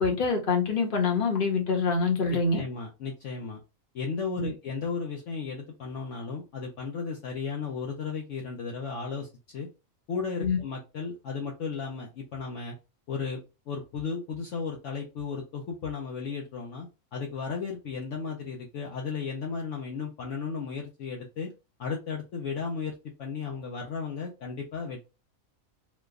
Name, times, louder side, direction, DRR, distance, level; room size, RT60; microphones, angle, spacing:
voice 1, 0.0-2.6 4.4-4.5 10.4-10.6, left 4 dB, 40° left, 1 dB, 1.1 m, -25 dB
voice 2, 2.3-3.6 3.9-9.7 10.1-12.8 13.1-21.5 21.8-22.9 23.2-25.0, left 5 dB, 65° left, 0 dB, 1.0 m, -35 dB
3.0 x 2.2 x 3.5 m, 0.28 s
omnidirectional pair, 1.5 m